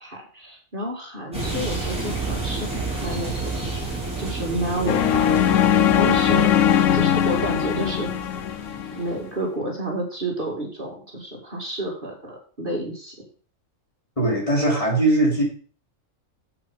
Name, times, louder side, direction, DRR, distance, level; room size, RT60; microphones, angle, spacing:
voice 1, 0.0-3.6 4.2-5.6 6.0-6.5 6.9-8.1 8.9-13.1, right 1 dB, 40° right, -1 dB, 2.5 m, -30 dB
sound 1, 1.3-9.2, right 3 dB, 5° right, 4.5 m, -31 dB
sound 2, 4.9-9.1, left 10 dB, 75° left, 0.9 m, -20 dB
voice 2, 14.2-15.4, right 1 dB, 25° left, -3 dB, 3.9 m, -20 dB
7.8 x 7.4 x 5.5 m, 0.41 s
omnidirectional pair, 1.4 m